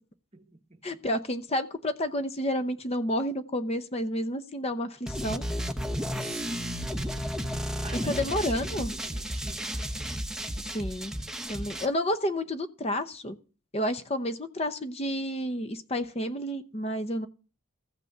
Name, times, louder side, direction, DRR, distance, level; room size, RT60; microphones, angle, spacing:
voice 1, 0.3-0.8 6.2-7.1 7.8-9.8, right 2 dB, 30° right, 1.0 m, -44 dB
voice 2, 0.8-5.4 8.0-8.9 10.7-11.1 11.5-13.4 13.7-17.3, equal, 25° left, 0.8 m, -30 dB
sound 1, 5.1-11.9, equal, 5° right, 0.8 m, -33 dB
15.0 x 6.0 x 6.6 m
head